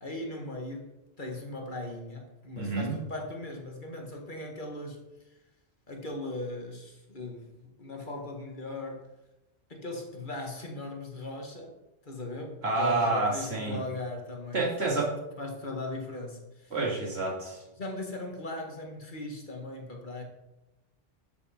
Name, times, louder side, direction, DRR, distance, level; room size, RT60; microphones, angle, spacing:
voice 1, 0.0-5.0 5.3-5.4 5.9-9.0 9.7-11.8 12.0-15.0 15.4-16.8 17.8-20.2, left 2 dB, 50° left, 1 dB, 1.9 m, -38 dB
voice 2, 2.5-2.9 12.6-13.8 14.5-15.1 16.7-17.6, right 3 dB, 75° right, -2 dB, 2.7 m, -28 dB
12.5 x 6.9 x 4.4 m, 0.99 s
omnidirectional pair, 1.1 m